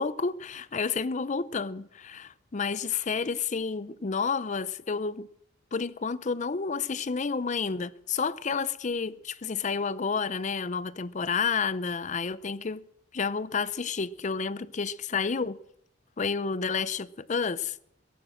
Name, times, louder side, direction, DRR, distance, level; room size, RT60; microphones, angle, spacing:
voice 1, 0.0-5.3 5.7-12.9 13.1-15.6 16.2-17.8, left 5 dB, 35° left, 0.5 m, -30 dB
16.0 x 11.0 x 7.5 m
head